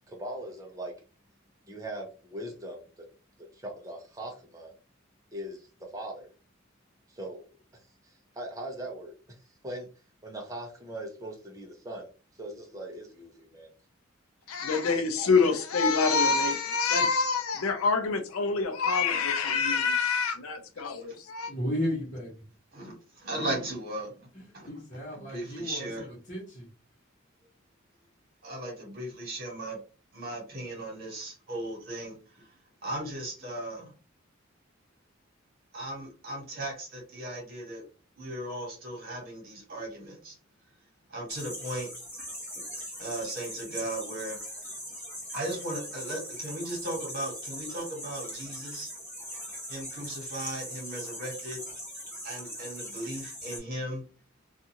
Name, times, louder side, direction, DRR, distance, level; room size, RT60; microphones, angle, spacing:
voice 1, 0.1-0.9 1.7-3.1 3.5-4.7 5.3-6.3 7.1-7.4 8.0-9.4 9.6-9.9 10.2-12.1 12.4-13.7, right 1 dB, 15° right, 0.6 m, -40 dB
voice 2, 14.5-21.5, left 4 dB, 85° left, 0.5 m, -26 dB
voice 3, 21.5-22.4 24.6-26.7, equal, 35° left, 1.0 m, -34 dB
voice 4, 22.7-24.3 24.5-24.7 25.2-26.1 28.4-29.8 30.1-32.6 32.8-33.9 35.7-37.8 38.2-40.4 41.1-41.9 43.0-44.4 45.3-48.9 49.7-51.6 52.2-54.0, right 1 dB, 45° right, 1.4 m, -37 dB
sound 1, 41.3-53.6, equal, 10° left, 1.0 m, -40 dB
2.5 x 2.4 x 2.8 m
head